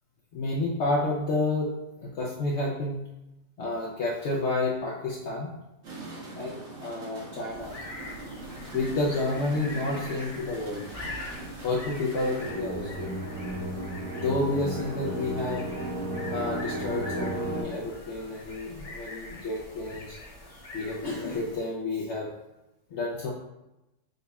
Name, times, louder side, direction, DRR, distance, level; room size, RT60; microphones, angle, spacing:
voice 1, 0.3-1.7 2.0-3.1 3.6-5.5 6.4-7.7 8.7-10.8 11.6-13.1 14.1-15.7 16.3-20.2 20.7-22.3 22.9-23.3, left 2 dB, 90° left, -3 dB, 0.6 m, -30 dB
sound 1, 5.8-12.5, right 2 dB, 50° right, 1.0 m, -42 dB
sound 2, 7.5-21.8, left 2 dB, 35° left, 0.5 m, -43 dB
sound 3, 12.4-17.6, right 1 dB, 65° right, 1.2 m, -33 dB
4.0 x 2.3 x 4.0 m, 0.95 s
omnidirectional pair, 1.8 m